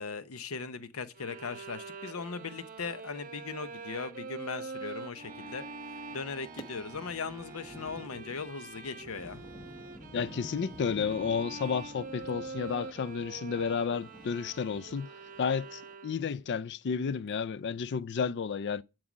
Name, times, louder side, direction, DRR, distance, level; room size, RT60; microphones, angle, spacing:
voice 1, 0.0-9.4, left 5 dB, 70° left, 0.8 m, -39 dB
Bowed string instrument, 1.2-16.4, right 4 dB, 40° right, 0.9 m, -45 dB
sound 1, 5.2-8.0, right 3 dB, 20° right, 1.8 m, -53 dB
sound 2, 6.6-15.9, left 1 dB, 20° left, 1.0 m, -50 dB
voice 2, 10.1-15.1 15.4-18.8, left 6 dB, 50° left, 0.4 m, -32 dB
11.0 x 4.7 x 6.1 m
head